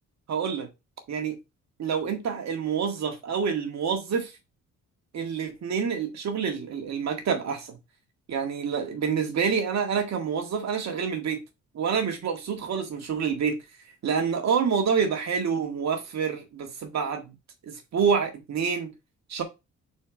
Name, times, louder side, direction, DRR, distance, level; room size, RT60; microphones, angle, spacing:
voice 1, 0.3-0.7 1.1-1.4 1.8-4.3 5.1-7.8 8.3-11.4 11.7-13.6 14.0-17.3 17.6-18.9 19.3-19.4, right 6 dB, 60° right, 2.0 m, -27 dB
4.5 x 4.2 x 5.1 m
cardioid pair, 90°, 30 cm